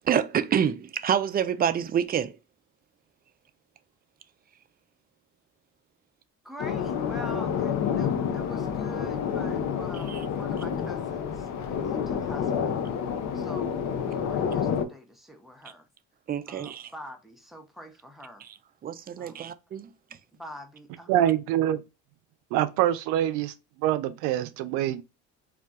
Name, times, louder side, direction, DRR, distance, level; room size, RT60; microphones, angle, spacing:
voice 1, 0.1-2.4 10.1-10.2 16.3-16.9 18.8-19.9, right 8 dB, 30° right, 0.3 m, -27 dB
voice 2, 6.4-12.9 13.3-15.9 16.5-18.4 19.2-19.5 20.3-21.3, equal, ahead, 0.7 m, -45 dB
sound 1, 6.6-14.9, left 7 dB, 50° left, 0.6 m, -29 dB
voice 3, 21.1-21.8 22.5-23.5 23.8-25.0, right 12 dB, 90° right, 0.5 m, -25 dB
2.3 x 2.2 x 3.8 m
supercardioid pair, 85°, 34 cm